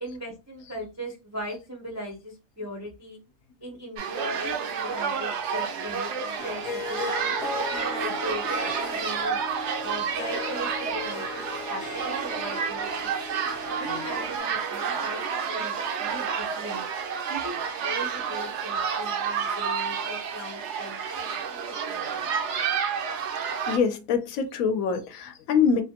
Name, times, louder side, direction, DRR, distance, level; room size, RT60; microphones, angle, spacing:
voice 1, 0.0-3.2 3.6-7.3 7.7-9.4 9.8-11.4 11.7-13.1 13.6-16.8 17.3-22.3, equal, 20° right, 0.4 m, -39 dB
sound 1, 4.0-23.8, right 6 dB, 65° right, 0.8 m, -30 dB
Harp, 6.4-14.4, left 4 dB, 45° left, 0.8 m, -37 dB
voice 2, 23.7-25.8, left 6 dB, 75° left, 1.0 m, -24 dB
3.2 x 2.1 x 2.8 m
omnidirectional pair, 1.5 m